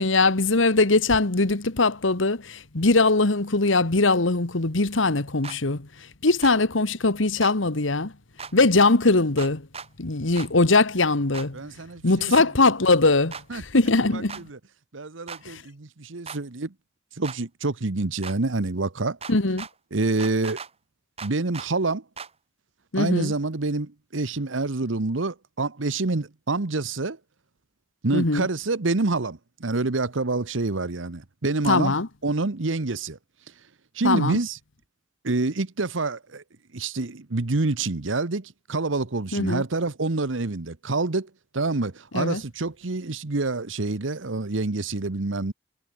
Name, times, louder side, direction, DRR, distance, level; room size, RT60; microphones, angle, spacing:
voice 1, 0.0-5.9 6.2-8.1 8.5-9.6 10.0-11.6 12.0-14.4 15.4-15.6 19.3-19.7 22.9-23.3 28.1-28.5 31.7-32.1 34.0-34.4 39.3-39.6 42.1-42.4, left 3 dB, 90° left, 1.7 m, -21 dB
sound 1, 5.4-5.6 6.4-6.6 7.4-7.5 8.4-8.5 9.4-9.9 10.4-10.5 11.3-11.5 12.3-12.5 13.3-13.4 14.3-14.4 15.3-15.4 16.3-16.4 17.2-17.4 18.2-18.4 19.2-19.7 20.2-20.7 21.2-21.7 22.2-22.3, right 5 dB, 30° right, 3.9 m, -37 dB
voice 2, 11.5-12.5 13.5-13.6 14.1-14.6 14.9-16.7 17.2-19.2 19.9-20.6 21.2-22.0 22.9-27.2 28.0-32.0 32.2-33.2 33.9-34.6 35.2-36.4 36.7-45.5, right 3 dB, 90° right, 1.1 m, -27 dB
head